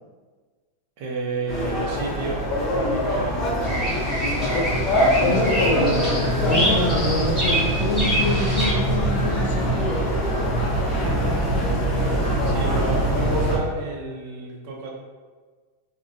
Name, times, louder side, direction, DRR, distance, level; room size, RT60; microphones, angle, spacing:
voice 1, 1.0-2.4 2.7-3.4 10.7-14.9, right 3 dB, 40° right, -1 dB, 0.4 m, -32 dB
sound 1, 1.5-13.6, equal, 25° left, 0.7 m, -23 dB
Bird vocalization bird call bird song, 3.6-8.7, equal, ahead, 1.1 m, -26 dB
voice 2, 4.4-4.7 5.2-10.1, left 2 dB, 60° left, 3 dB, 0.4 m, -26 dB
2.6 x 2.1 x 2.5 m, 1.5 s
supercardioid pair, 180°, 0 cm